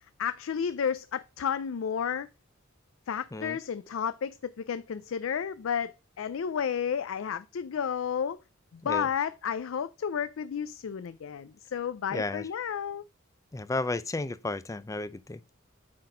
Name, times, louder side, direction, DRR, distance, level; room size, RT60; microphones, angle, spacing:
voice 1, 0.2-2.3 3.1-8.4 8.7-13.0, left 7 dB, 75° left, 0.4 m, -32 dB
voice 2, 12.1-12.5 13.5-15.4, left 2 dB, 15° left, 0.4 m, -33 dB
8.6 x 4.1 x 4.8 m
head